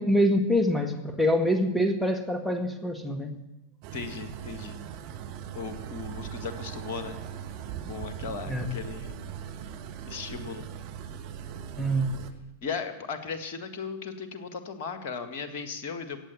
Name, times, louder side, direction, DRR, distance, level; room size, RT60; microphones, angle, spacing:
voice 1, 0.0-3.4 8.5-8.7 11.8-12.2, equal, 5° left, 6 dB, 1.8 m, -25 dB
sound 1, 3.8-12.3, right 9 dB, 45° right, 1.3 m, -40 dB
voice 2, 3.9-4.8 5.5-7.2 7.9-9.2 10.0-10.7 12.6-16.2, left 5 dB, 45° left, 8 dB, 1.7 m, -37 dB
15.5 x 8.8 x 8.2 m, 0.94 s
figure-of-eight pair, 90°, 0 cm